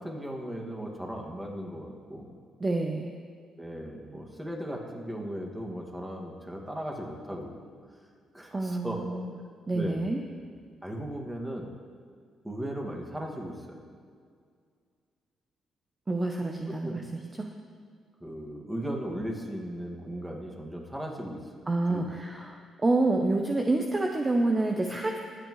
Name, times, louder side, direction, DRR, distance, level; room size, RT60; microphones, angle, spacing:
voice 1, 0.0-2.4 3.6-7.6 8.3-9.2 9.7-10.0 10.8-11.7 12.4-13.8 16.8-17.0 18.2-22.2, equal, 10° right, 0 dB, 2.1 m, -37 dB
voice 2, 2.6-3.1 8.5-9.4 9.7-10.2 16.1-17.5 21.7-25.2, right 2 dB, 25° right, 2 dB, 0.8 m, -28 dB
22.0 x 8.2 x 3.2 m, 2.1 s
cardioid pair, 90°, 0 cm